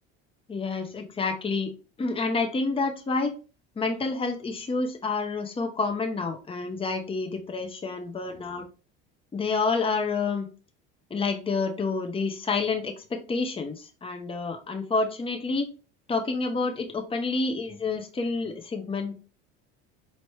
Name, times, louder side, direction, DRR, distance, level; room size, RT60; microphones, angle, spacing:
voice 1, 0.5-1.7 2.0-3.3 3.8-8.6 9.3-10.5 11.1-15.7 16.1-19.2, left 4 dB, 20° left, 4 dB, 0.9 m, -28 dB
4.4 x 2.9 x 3.2 m, 0.33 s
supercardioid pair, 95°, 30 cm